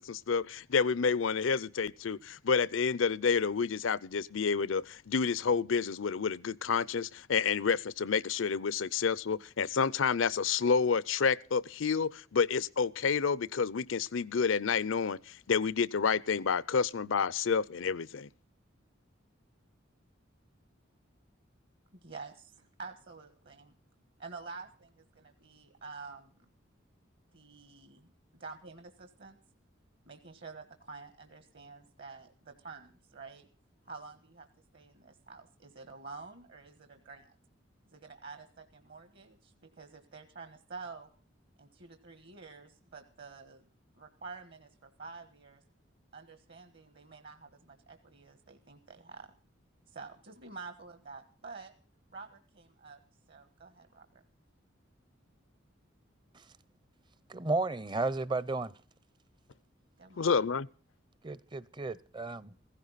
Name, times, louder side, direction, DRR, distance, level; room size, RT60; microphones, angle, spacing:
voice 1, 0.0-18.3 60.2-60.7, left 5 dB, 85° left, 0.6 m, -29 dB
voice 2, 21.9-23.7 24.2-26.5 27.3-28.1 28.4-29.4 30.1-33.5 33.8-34.5 34.7-37.3 37.9-41.1 41.6-43.7 43.9-44.7 45.0-45.6 46.1-49.3 49.9-51.7 52.1-53.0 53.3-54.2 60.0-60.4, right 4 dB, 55° right, 1.4 m, -48 dB
voice 3, 57.3-58.7 61.2-62.4, right 3 dB, 25° right, 0.6 m, -33 dB
16.0 x 15.5 x 4.1 m
head